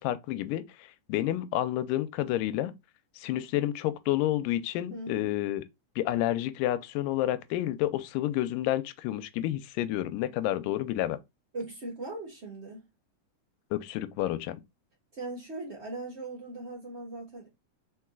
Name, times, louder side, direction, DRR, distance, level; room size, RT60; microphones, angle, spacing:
voice 1, 0.0-2.7 3.2-5.6 6.0-11.2 13.7-14.6, left 14 dB, 90° left, 2.2 m, -30 dB
voice 2, 4.9-5.4 11.5-12.9 15.1-17.5, right 2 dB, 90° right, 0.5 m, -39 dB
4.6 x 4.4 x 2.3 m
omnidirectional pair, 3.8 m